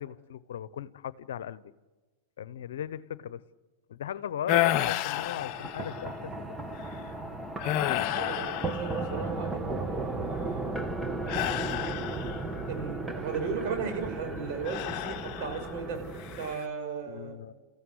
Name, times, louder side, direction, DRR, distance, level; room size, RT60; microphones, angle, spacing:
voice 1, 0.0-1.7 2.4-3.4 3.9-6.3 17.1-17.5, left 9 dB, 75° left, 17 dB, 0.9 m, -38 dB
sound 1, 4.5-6.2 6.7-7.0 7.6-9.5 11.3-12.6 14.6-15.8 16.2-16.6, left 14 dB, 50° left, 1.0 m, -31 dB
sound 2, 5.1-16.5, right 2 dB, 10° right, 1.9 m, -35 dB
voice 2, 8.1-10.4 12.7-16.0 16.4-17.4, right 5 dB, 55° right, 6 dB, 6.1 m, -36 dB
28.5 x 15.0 x 9.7 m, 1.3 s
hypercardioid pair, 110°, 0 cm